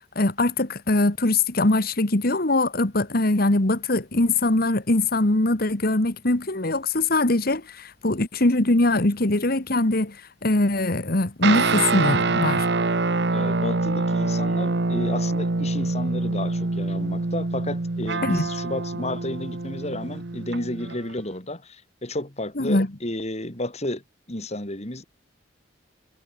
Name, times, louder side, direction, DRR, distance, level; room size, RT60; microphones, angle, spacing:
voice 1, 0.1-10.2 10.4-12.7 18.2-18.5 22.6-22.9, left 2 dB, 55° left, 1.8 m, -22 dB
sound 1, 11.4-21.1, right 3 dB, 65° right, 1.1 m, -25 dB
voice 2, 13.3-24.0 24.3-25.0, left 1 dB, 35° left, 4.5 m, -32 dB
head